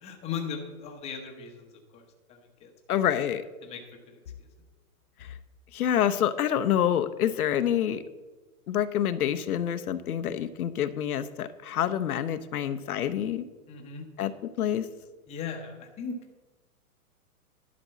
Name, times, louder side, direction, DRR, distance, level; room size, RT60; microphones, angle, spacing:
voice 1, 0.0-2.7 3.6-4.5 13.7-14.1 15.3-16.2, left 6 dB, 15° left, 3 dB, 1.0 m, -38 dB
voice 2, 2.9-3.4 5.2-5.3 5.7-8.0 8.7-13.5 14.2-14.3 14.6-14.9, left 10 dB, 75° left, 11 dB, 0.8 m, -27 dB
11.0 x 5.2 x 7.4 m, 1.2 s
hypercardioid pair, 150°, 45 cm